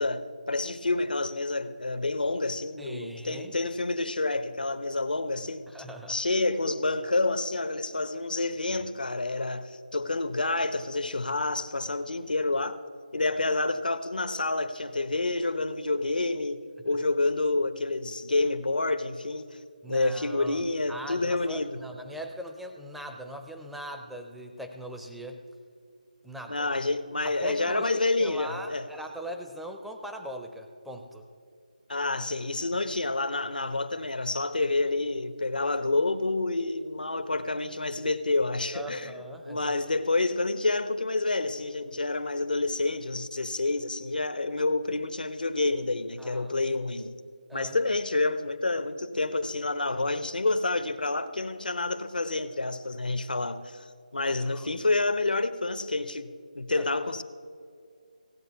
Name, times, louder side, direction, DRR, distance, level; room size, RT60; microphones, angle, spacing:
voice 1, 0.0-5.7 6.1-12.8 13.1-19.6 19.9-21.8 26.5-28.9 31.9-39.1 39.4-47.1 47.5-53.9 54.1-57.2, left 2 dB, 85° left, 0.9 m, -28 dB
voice 2, 2.8-3.6 5.7-6.2 8.7-8.9 19.8-20.6 20.9-25.4 26.2-26.7 27.2-31.3 38.7-39.7 46.2-46.5 47.5-47.7 54.2-54.7 56.7-56.9, equal, ahead, 0.5 m, -40 dB
16.5 x 8.0 x 5.7 m
figure-of-eight pair, 165°, 5 cm